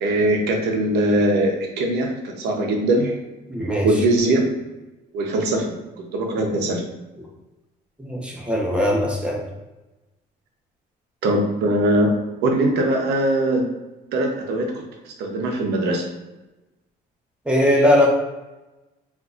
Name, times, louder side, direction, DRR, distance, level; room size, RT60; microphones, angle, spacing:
voice 1, 0.0-3.1 3.8-4.4 5.1-5.6 6.0-6.8 11.2-12.1 12.4-13.6 14.1-16.0, right 1 dB, 80° right, 2 dB, 0.7 m, -21 dB
voice 2, 3.5-3.9 8.0-9.4 17.5-18.1, left 1 dB, 5° right, -2 dB, 0.8 m, -19 dB
3.7 x 2.6 x 2.4 m, 1.0 s
cardioid pair, 110°, 17 cm